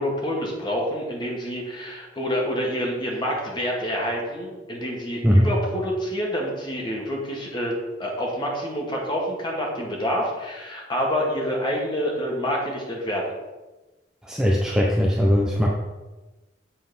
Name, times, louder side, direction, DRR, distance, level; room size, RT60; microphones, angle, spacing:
voice 1, 0.0-13.3, equal, 25° left, -2 dB, 1.8 m, -27 dB
voice 2, 14.2-15.7, equal, 5° right, -3 dB, 0.6 m, -19 dB
7.7 x 4.2 x 5.4 m, 1.1 s
head